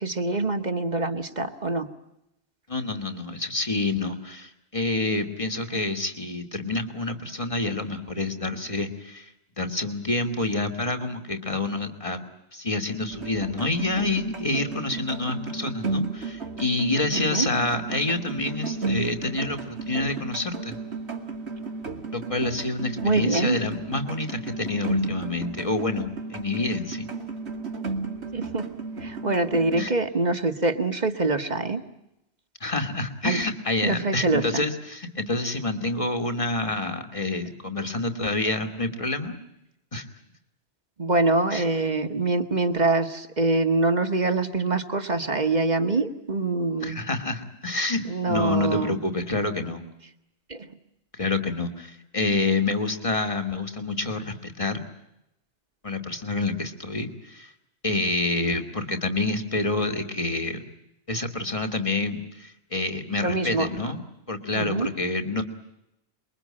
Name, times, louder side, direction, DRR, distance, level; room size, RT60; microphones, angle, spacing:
voice 1, 0.0-1.9 17.1-17.5 23.0-23.6 28.3-28.7 29.0-31.8 33.2-33.4 33.8-34.6 41.0-47.0 48.1-49.0 50.5-50.7 63.2-63.7 64.5-64.9, right 3 dB, 40° right, 7 dB, 1.7 m, -25 dB
voice 2, 2.7-9.3 9.6-12.2 12.5-20.8 22.1-27.1 29.8-29.9 32.6-39.4 39.9-40.1 41.5-41.6 46.8-49.8 51.2-54.8 55.8-57.5 57.8-60.6 61.1-64.0 64.3-65.4, left 2 dB, 30° left, 5 dB, 2.5 m, -28 dB
sound 1, 13.1-29.9, right 3 dB, 80° right, 2.8 m, -34 dB
27.5 x 22.5 x 8.8 m, 0.87 s
omnidirectional pair, 1.1 m